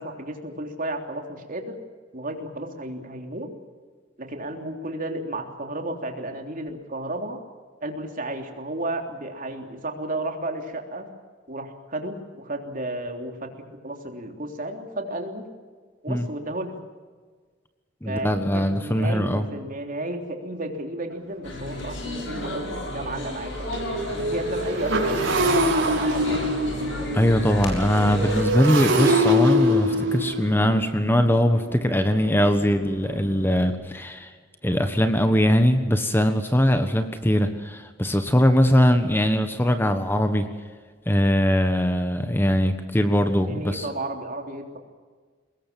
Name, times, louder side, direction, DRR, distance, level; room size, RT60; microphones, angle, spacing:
voice 1, 0.0-1.8 2.1-3.5 4.2-7.4 7.8-11.1 11.5-13.5 13.8-15.4 16.0-16.7 18.0-23.7 24.3-26.4 43.4-44.8, right 1 dB, 45° right, 4 dB, 3.3 m, -33 dB
voice 2, 18.0-19.5 27.1-34.3 34.6-40.4 41.1-43.9, equal, 10° left, 8 dB, 1.4 m, -21 dB
Motorcycle, 21.1-21.2 21.7-21.8 22.1-33.7, equal, 85° right, 5.3 m, -25 dB
sound 1, 21.4-28.4, left 1 dB, 80° left, 6.8 m, -33 dB
23.5 x 20.5 x 7.5 m, 1.5 s
head